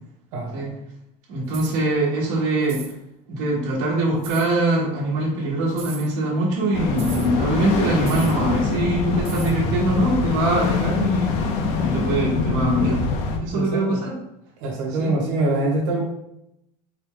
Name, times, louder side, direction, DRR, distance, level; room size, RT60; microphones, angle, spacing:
voice 1, 0.3-0.7 13.5-14.0 14.6-16.0, right 2 dB, 85° right, -1 dB, 1.2 m, -24 dB
voice 2, 1.3-2.8 3.3-11.3 11.8-13.1 13.4-14.1 15.0-15.2, right 2 dB, 60° right, -4 dB, 1.1 m, -23 dB
sound 1, 1.5-1.8 2.6-2.9 4.2-4.5 5.7-6.1 7.0-7.3 8.0-8.4 9.2-9.6, right 8 dB, 35° right, 0.4 m, -38 dB
sound 2, 6.7-13.4, left 4 dB, 45° left, 0.5 m, -24 dB
4.1 x 2.1 x 3.7 m, 0.81 s
cardioid pair, 170°, 16 cm